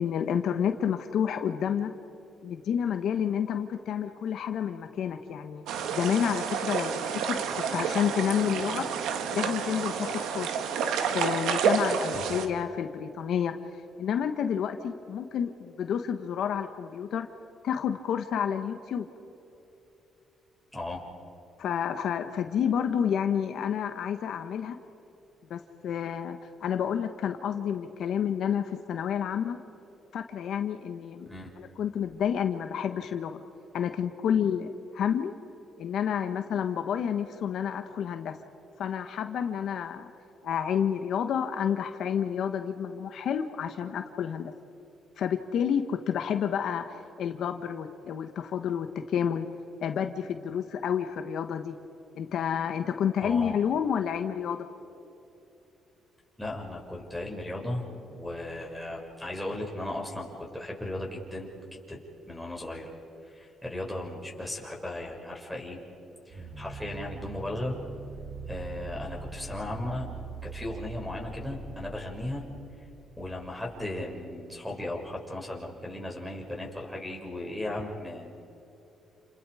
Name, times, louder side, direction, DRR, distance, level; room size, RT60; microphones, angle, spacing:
voice 1, 0.0-1.9 2.4-5.6 5.9-8.9 9.3-10.5 11.1-13.6 14.0-17.3 17.6-19.1 21.6-24.8 25.5-29.6 30.1-31.3 31.6-33.4 33.7-35.3 35.8-38.4 38.8-40.1 40.4-44.5 45.2-49.5 49.8-51.8 52.1-54.7, left 8 dB, 70° left, 7 dB, 1.3 m, -29 dB
sound 1, 5.7-12.5, right 6 dB, 85° right, 1.8 m, -29 dB
voice 2, 20.7-21.0 31.3-31.5 53.2-53.5 56.4-61.5 61.9-62.0 62.3-62.9 63.2-65.8 66.3-67.8 68.5-70.1 70.4-72.4 73.2-78.4, left 1 dB, 5° left, -2 dB, 6.3 m, -36 dB
sound 2, 66.3-73.5, right 4 dB, 60° right, 3.0 m, -42 dB
29.5 x 29.0 x 5.0 m, 3.0 s
cardioid pair, 90°, 0 cm